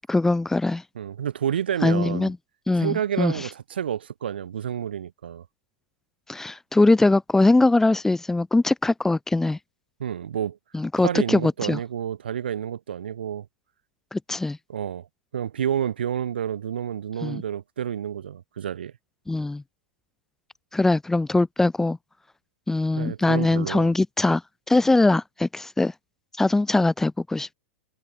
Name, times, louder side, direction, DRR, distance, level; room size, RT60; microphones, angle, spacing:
voice 1, 0.1-0.8 1.8-2.4 2.7-3.3 6.3-9.6 10.7-11.8 14.1-14.6 17.2-17.4 19.3-19.6 20.7-22.0 22.7-24.4 24.7-25.9 26.4-27.5, left 2 dB, 5° left, 1.4 m, -21 dB
voice 2, 0.9-2.3 2.8-5.4 10.0-10.6 11.0-13.5 14.7-15.1 15.3-18.9 23.0-23.9, right 9 dB, 75° right, 3.0 m, -29 dB
hypercardioid pair, 105°, 5 cm